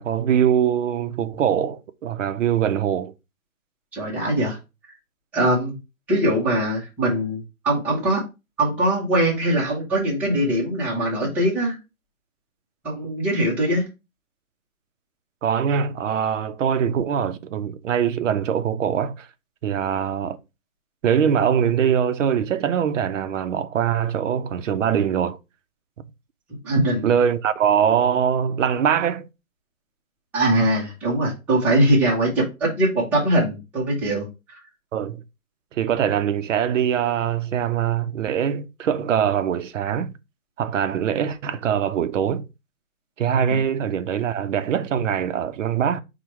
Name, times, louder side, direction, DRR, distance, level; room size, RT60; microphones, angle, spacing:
voice 1, 0.0-3.1 15.4-19.3 19.6-20.4 21.0-25.4 27.0-29.3 34.9-35.2 35.7-40.1 40.6-42.5 43.2-46.0, right 8 dB, 60° right, 0.5 m, -22 dB
voice 2, 3.9-4.6 5.3-5.8 6.1-8.2 8.6-11.8 12.8-13.9 26.6-27.0 30.3-34.6, right 1 dB, 5° right, 0.6 m, -22 dB
4.5 x 2.2 x 4.4 m
hypercardioid pair, 145°, 43 cm